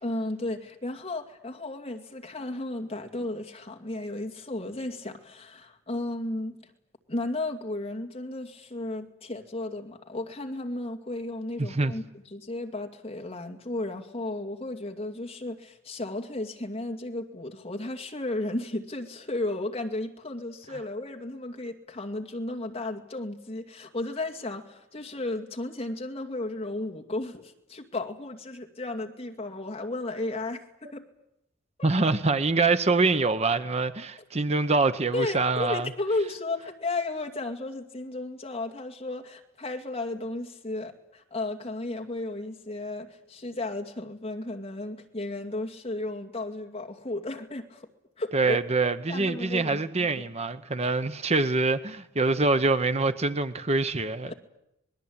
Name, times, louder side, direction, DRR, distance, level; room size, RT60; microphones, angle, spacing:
voice 1, 0.0-6.5 7.1-12.0 12.3-31.1 31.8-31.9 35.1-47.9 48.2-48.6 49.1-50.3 54.2-54.3, left 2 dB, 30° left, 2.4 m, -34 dB
voice 2, 11.6-11.9 31.8-35.9 48.3-54.3, right 3 dB, 35° right, 0.9 m, -25 dB
26.5 x 20.5 x 8.8 m
head